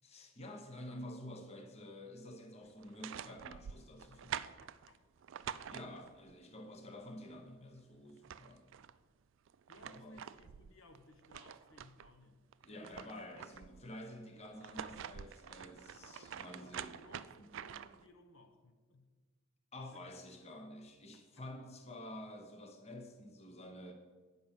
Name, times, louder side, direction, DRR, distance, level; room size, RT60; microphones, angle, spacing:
voice 1, 0.0-4.4 5.7-8.7 9.8-10.2 12.6-16.9 19.7-23.9, left 1 dB, 30° left, 4 dB, 0.9 m, -50 dB
sound 1, 2.8-6.3 7.8-7.9 8.1-9.0 9.5-12.1 12.5-13.9 14.5-18.1, right 8 dB, 60° right, 0.3 m, -47 dB
voice 2, 4.6-5.0 9.7-13.1 15.9-19.1 19.9-20.0 21.1-21.5, left 1 dB, 65° left, 6 dB, 0.8 m, -61 dB
9.4 x 5.5 x 7.2 m, 1.4 s
head